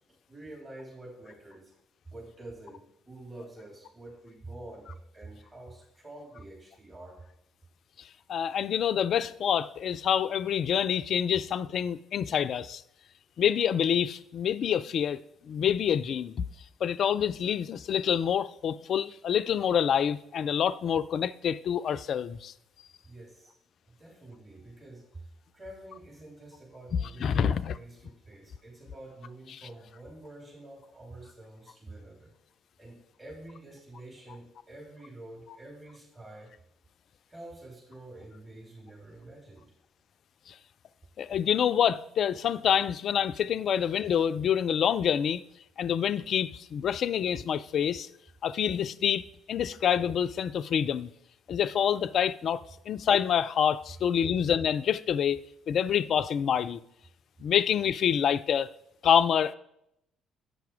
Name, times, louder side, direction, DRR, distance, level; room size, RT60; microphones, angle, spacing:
voice 1, 0.3-1.7 2.1-7.2 23.0-23.6 23.8-32.3 32.8-36.5 37.3-39.7, right 2 dB, 30° right, 3.0 m, -47 dB
voice 2, 8.0-12.8 13.4-16.5 16.8-22.5 26.9-27.7 29.5-29.6 40.5-40.6 41.2-45.4 45.8-48.1 48.4-51.1 51.5-56.8 57.4-58.7 59.0-59.5, left 8 dB, 55° left, 0.3 m, -27 dB
8.0 x 5.8 x 4.7 m
figure-of-eight pair, 45°, 0 cm